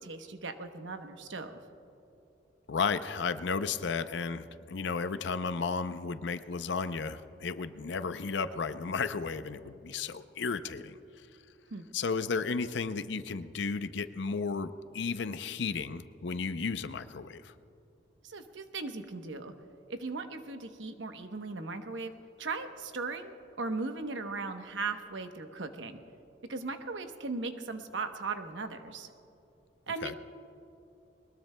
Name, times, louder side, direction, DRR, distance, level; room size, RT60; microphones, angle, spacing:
voice 1, 0.0-1.6 11.7-11.8 18.2-19.5 19.9-22.1 22.4-26.0 26.5-29.1 29.9-30.1, right 3 dB, 80° right, 7 dB, 0.9 m, -38 dB
voice 2, 2.7-11.0 11.9-17.5 30.0-30.1, left 5 dB, 70° left, 12 dB, 0.5 m, -33 dB
21.5 x 20.5 x 2.2 m, 2.9 s
head